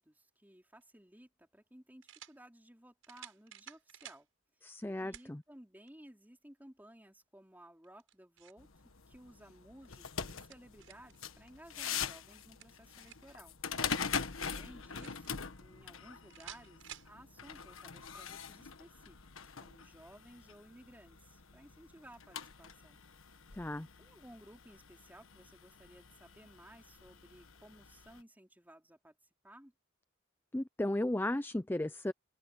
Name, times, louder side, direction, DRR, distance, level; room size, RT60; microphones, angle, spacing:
voice 1, 0.0-4.3 4.6-4.7 5.0-13.6 14.4-23.0 23.3-23.6 24.0-29.2 29.4-29.7, right 1 dB, 10° right, 4.1 m, -58 dB
sound 1, 0.8-0.9 2.0-2.4 3.0-4.2 5.1-5.3 5.9-6.0 7.8-8.6 10.0-11.2 12.3-13.4 14.4-15.3 16.3-17.1, right 10 dB, 75° right, 7.2 m, -53 dB
voice 2, 4.6-5.4 23.5-23.9 30.5-32.1, left 1 dB, 10° left, 0.4 m, -35 dB
sound 2, 8.6-28.2, left 6 dB, 80° left, 1.4 m, -44 dB
head